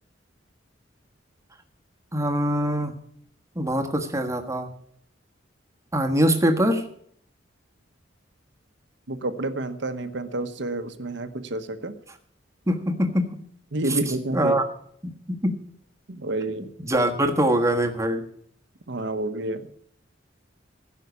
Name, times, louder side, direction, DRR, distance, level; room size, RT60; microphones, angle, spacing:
voice 1, 2.1-2.9 3.5-4.7 5.9-6.8 12.7-13.4 13.9-14.0 14.3-14.6 15.0-15.5 16.8-18.2, right 1 dB, 15° right, 4 dB, 1.4 m, -23 dB
voice 2, 9.1-11.9 13.7-14.6 16.1-16.7 18.9-19.7, right 2 dB, 65° right, 9 dB, 1.1 m, -29 dB
15.5 x 5.7 x 8.2 m, 0.64 s
head